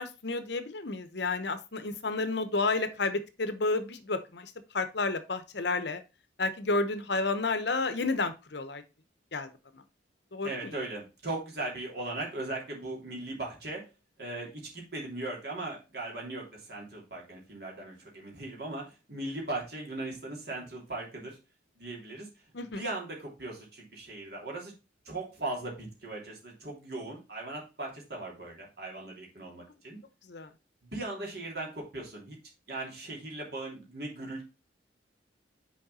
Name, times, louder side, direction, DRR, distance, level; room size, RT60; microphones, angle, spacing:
voice 1, 0.0-4.5 4.7-6.0 6.4-8.8 9.3-9.5 10.3-10.5 22.5-22.8 30.3-30.5, left 3 dB, 60° left, 10 dB, 0.9 m, -31 dB
voice 2, 10.4-13.8 14.2-18.8 19.1-21.4 21.8-22.3 22.7-24.7 25.0-30.0 30.8-32.4 32.7-34.4, right 2 dB, 55° right, -2 dB, 3.1 m, -38 dB
6.3 x 4.9 x 4.2 m, 0.29 s
head